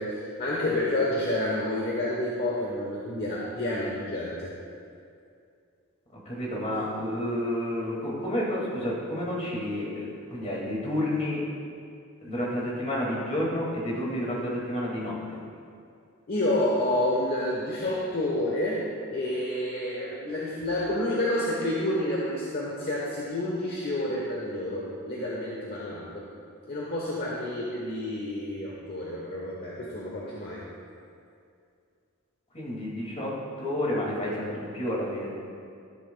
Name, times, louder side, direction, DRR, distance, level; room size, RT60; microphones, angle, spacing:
voice 1, 0.0-4.5 16.3-18.8 19.1-26.3 26.7-30.7, left 1 dB, 45° left, -5 dB, 1.1 m, -29 dB
voice 2, 6.1-11.4 12.2-15.1 32.5-35.3, left 1 dB, 30° left, -4 dB, 2.3 m, -30 dB
13.0 x 10.5 x 2.3 m, 2.4 s
head